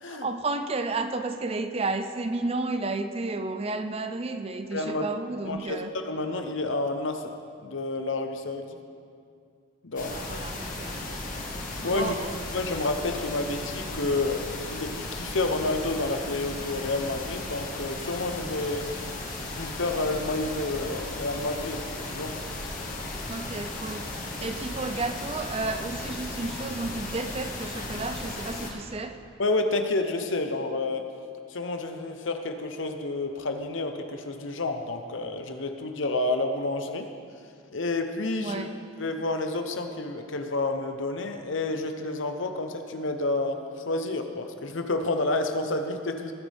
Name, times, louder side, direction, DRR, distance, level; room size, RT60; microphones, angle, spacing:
voice 1, 0.0-5.9 10.1-11.3 11.9-12.3 23.3-29.2 38.4-38.8, right 3 dB, 30° right, 8 dB, 0.5 m, -32 dB
voice 2, 4.7-5.1 5.4-7.3 7.6-8.8 9.8-10.2 11.8-12.1 12.5-18.9 19.5-22.4 29.4-31.1 31.5-37.1 37.7-38.6 39.0-46.3, left 2 dB, 70° left, 6 dB, 0.9 m, -29 dB
sound 1, 10.0-28.7, left 2 dB, 40° left, 1.6 m, -36 dB
19.5 x 9.5 x 3.6 m, 2.3 s
head